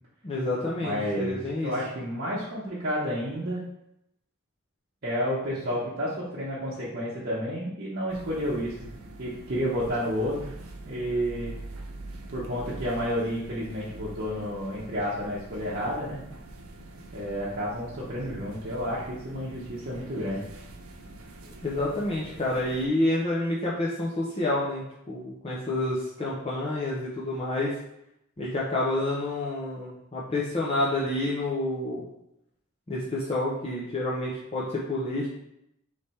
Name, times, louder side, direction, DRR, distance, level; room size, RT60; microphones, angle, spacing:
voice 1, 0.2-1.7 21.6-27.7 28.4-32.0 32.9-35.3, left 1 dB, 30° left, -6 dB, 0.6 m, -29 dB
voice 2, 0.8-1.4 1.6-3.6 5.0-8.9 9.2-10.5 10.8-11.6 12.3-16.2 17.1-20.4, equal, 50° right, -8 dB, 0.8 m, -30 dB
sound 1, 8.1-22.9, right 2 dB, 90° right, 0.6 m, -44 dB
3.4 x 3.2 x 4.1 m, 0.82 s
head